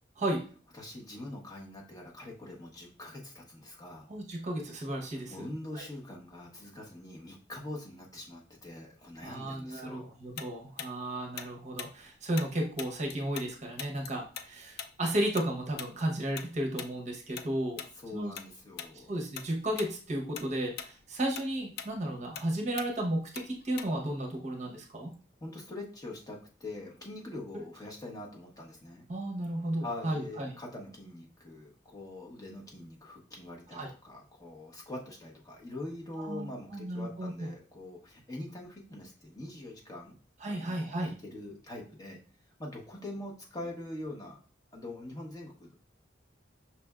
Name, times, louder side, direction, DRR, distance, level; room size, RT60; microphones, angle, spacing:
voice 1, 0.7-4.1 5.3-10.1 17.9-19.1 25.4-29.1 29.8-40.2 40.4-42.2 42.6-44.4 44.7-45.7, left 1 dB, 20° left, -2 dB, 0.9 m, -43 dB
voice 2, 4.1-5.5 5.7-5.8 9.2-17.8 18.1-18.3 19.1-25.1 27.5-27.6 29.1-30.5 33.7-33.9 36.2-37.5 40.4-41.1, right 1 dB, 40° right, 1 dB, 0.8 m, -34 dB
Tick-tock, 10.4-13.5 13.8-18.5 18.8-19.0 19.3-19.9 20.2-24.2, left 8 dB, 55° left, 0.4 m, -43 dB
5.7 x 3.3 x 2.3 m, 0.40 s
head